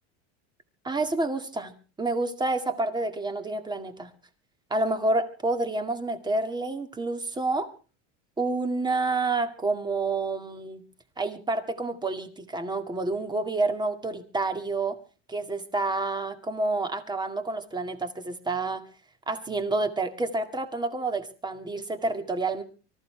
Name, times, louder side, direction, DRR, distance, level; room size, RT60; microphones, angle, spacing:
voice 1, 0.8-1.7 2.0-4.1 4.7-7.7 8.4-10.8 11.2-15.0 15.3-18.8 19.3-22.6, right 2 dB, 10° right, 7 dB, 2.1 m, -28 dB
24.5 x 14.5 x 3.4 m, 0.35 s
supercardioid pair, 130°, 35 cm